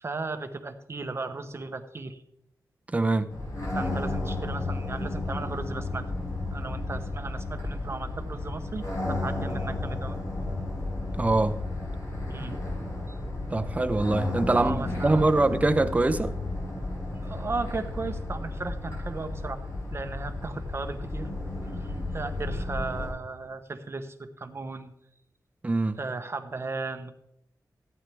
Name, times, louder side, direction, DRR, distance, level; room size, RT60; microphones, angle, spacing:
voice 1, 0.0-2.2 3.7-6.0 6.5-10.2 12.3-12.6 13.1-13.2 14.5-15.3 17.2-19.6 19.9-21.3 21.6-24.9 26.0-27.1, right 3 dB, 40° right, 1.0 m, -36 dB
voice 2, 2.9-3.3 11.1-11.6 13.5-16.3 25.6-26.0, right 2 dB, 20° right, 0.6 m, -24 dB
sound 1, 3.3-23.1, left 2 dB, 55° left, 5.4 m, -33 dB
15.0 x 9.1 x 3.4 m
wide cardioid pair, 140°, 7 cm